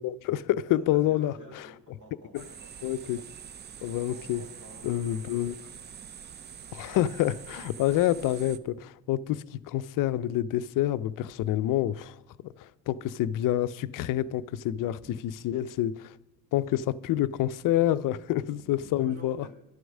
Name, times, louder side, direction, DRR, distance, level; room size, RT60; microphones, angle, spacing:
voice 1, 0.0-1.7 2.3-2.4 2.8-3.2 3.8-4.4 4.8-5.6 6.7-12.2 12.4-15.0 15.4-16.1 16.5-19.5, left 13 dB, 50° left, 0.5 m, -28 dB
voice 2, 0.7-2.9 4.0-5.4 15.0-15.1 17.7-17.9 18.8-19.5, right 2 dB, 45° right, 3.1 m, -50 dB
sound 1, 2.3-8.6, right 8 dB, 25° right, 0.4 m, -45 dB
11.5 x 4.6 x 6.4 m
hypercardioid pair, 60°, 43 cm